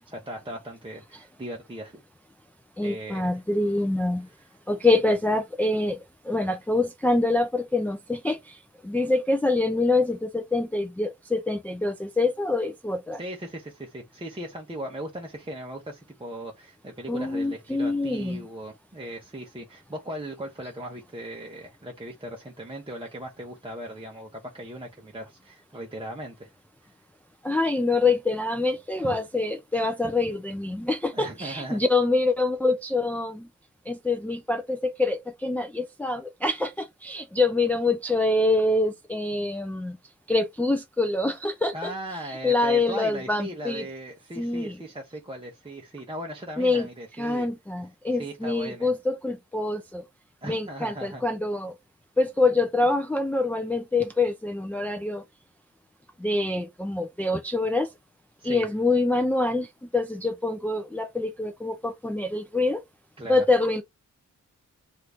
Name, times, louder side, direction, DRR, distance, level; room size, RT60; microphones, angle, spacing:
voice 1, 0.1-2.0 2.8-3.3 4.2-4.5 13.1-26.5 26.8-26.9 29.0-29.2 31.1-31.8 41.7-47.5 48.1-48.9 50.4-51.2 58.4-58.6 63.2-63.4, right 1 dB, 15° right, 0.7 m, -38 dB
voice 2, 2.8-4.3 4.7-6.0 6.2-8.6 8.8-13.2 17.1-18.4 27.4-33.5 33.9-40.0 40.3-41.9 42.4-43.8 44.4-44.8 46.6-46.9 47.2-50.0 50.5-51.7 52.2-55.2 56.2-57.9 58.4-62.8 63.3-63.8, left 2 dB, 5° left, 0.4 m, -25 dB
2.9 x 2.5 x 3.3 m
wide cardioid pair, 120°, 31 cm